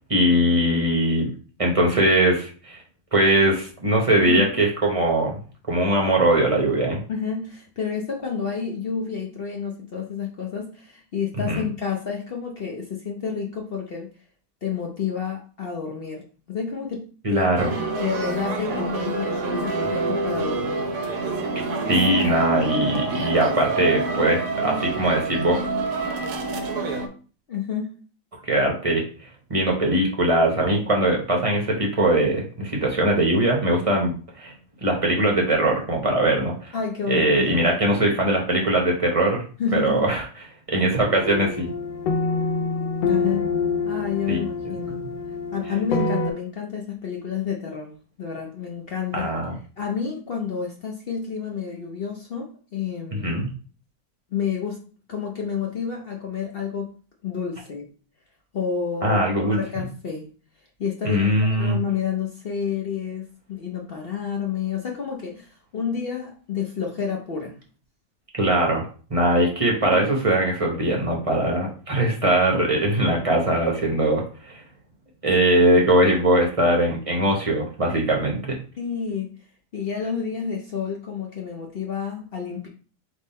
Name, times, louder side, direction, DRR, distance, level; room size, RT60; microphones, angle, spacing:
voice 1, 0.1-1.3 1.6-2.8 3.1-5.4 5.7-7.0 11.4-11.6 17.2-17.7 21.9-25.6 28.4-29.0 29.5-34.5 34.8-36.7 37.1-39.4 39.7-40.2 40.7-41.7 44.3-44.5 49.1-49.5 53.2-53.5 59.0-59.6 61.0-61.8 68.3-74.6 75.2-78.6, right 1 dB, 25° right, 0 dB, 0.8 m, -21 dB
voice 2, 7.1-14.1 14.6-17.5 18.0-20.9 27.5-27.9 36.7-37.8 39.6-40.0 43.0-43.5 43.8-45.0 45.5-49.3 49.8-53.4 54.3-54.8 55.1-56.9 57.2-57.9 58.5-59.2 59.5-60.3 60.8-61.3 61.6-67.6 69.9-70.0 78.8-79.4 79.7-82.7, left 6 dB, 60° left, 0 dB, 0.6 m, -29 dB
sound 1, 17.6-27.1, right 3 dB, 65° right, 0.9 m, -27 dB
sound 2, 17.7-24.4, equal, 45° right, 0.3 m, -36 dB
sound 3, 41.1-46.3, left 4 dB, 90° left, 1.3 m, -26 dB
3.7 x 3.1 x 4.2 m, 0.38 s
omnidirectional pair, 1.9 m